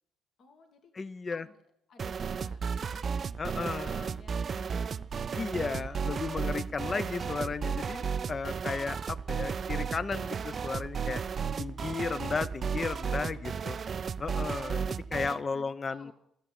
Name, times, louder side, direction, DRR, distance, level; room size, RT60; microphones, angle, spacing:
voice 1, 0.4-1.6 1.9-6.1 11.4-11.8 13.1-13.8 14.7-16.1, left 3 dB, 60° left, 4 dB, 1.9 m, -58 dB
voice 2, 1.0-1.5 3.4-4.2 5.3-11.2 11.6-13.8 14.2-16.1, left 4 dB, 40° left, 15 dB, 0.7 m, -34 dB
sound 1, 2.0-15.4, right 6 dB, 50° right, 0.4 m, -34 dB
13.0 x 6.9 x 8.9 m, 0.73 s
hypercardioid pair, 55°, 0 cm